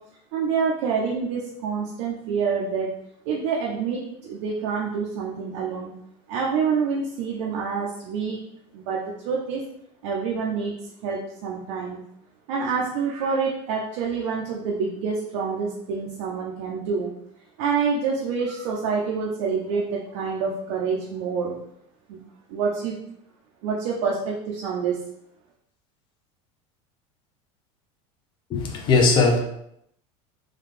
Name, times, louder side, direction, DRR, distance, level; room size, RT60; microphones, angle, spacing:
voice 1, 0.3-3.0 3.3-5.9 6.3-8.4 8.7-9.6 10.0-10.7 11.0-12.0 12.5-17.1 17.6-21.6 22.1-22.2 22.5-22.9 23.6-25.0, right 5 dB, 70° right, -2 dB, 0.7 m, -27 dB
voice 2, 28.5-29.4, left 3 dB, 30° left, 1 dB, 0.6 m, -19 dB
3.8 x 2.3 x 3.2 m, 0.75 s
supercardioid pair, 150°, 16 cm